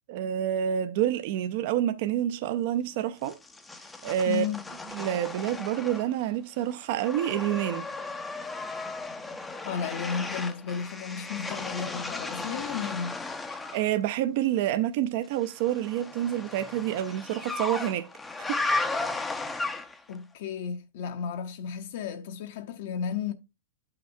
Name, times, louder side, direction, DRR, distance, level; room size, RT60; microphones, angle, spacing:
voice 1, 0.1-3.4 4.0-4.5 4.9-7.9 13.7-18.1 18.4-18.8, right 11 dB, 45° right, 0.4 m, -28 dB
sound 1, 3.2-6.3 6.6-13.9 15.4-20.1, left 3 dB, 5° left, 0.5 m, -35 dB
voice 2, 4.3-4.6 9.6-13.2 20.1-23.3, left 7 dB, 55° left, 0.7 m, -33 dB
10.0 x 5.8 x 2.6 m
supercardioid pair, 160°, 0 cm